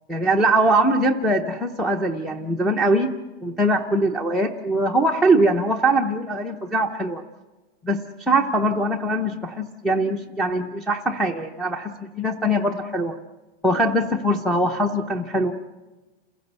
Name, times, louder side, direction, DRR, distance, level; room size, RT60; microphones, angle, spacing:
voice 1, 0.1-3.1 3.4-7.2 7.8-13.2 13.6-15.5, right 1 dB, ahead, -1 dB, 0.6 m, -22 dB
29.0 x 16.0 x 8.0 m, 1.2 s
supercardioid pair, 165°, 31 cm